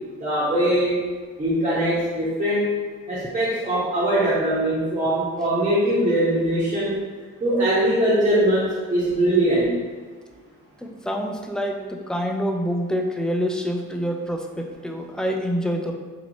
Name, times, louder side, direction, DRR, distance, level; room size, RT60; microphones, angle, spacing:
voice 1, 0.2-1.0 1.4-2.7 3.1-7.0 7.4-9.7, right 1 dB, 25° right, -11 dB, 1.3 m, -21 dB
voice 2, 10.8-15.9, equal, 5° left, 2 dB, 0.4 m, -26 dB
4.1 x 2.9 x 2.9 m, 1.5 s
cardioid pair, 90°, 30 cm